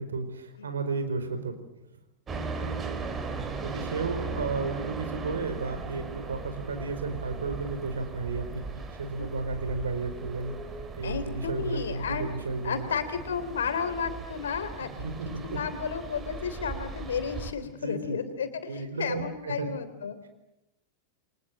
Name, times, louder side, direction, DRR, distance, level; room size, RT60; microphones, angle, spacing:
voice 1, 0.0-1.5 2.6-2.7 3.6-10.5 11.0-12.9 14.8-15.6 17.6-18.2 18.7-19.7, right 3 dB, 70° right, 8 dB, 4.8 m, -33 dB
sound 1, 2.3-17.5, right 4 dB, 20° right, 3.5 m, -38 dB
voice 2, 11.0-12.3 12.6-15.1 15.4-20.2, left 6 dB, 65° left, 10 dB, 3.3 m, -33 dB
29.5 x 24.5 x 7.6 m, 0.91 s
figure-of-eight pair, 90°, 0 cm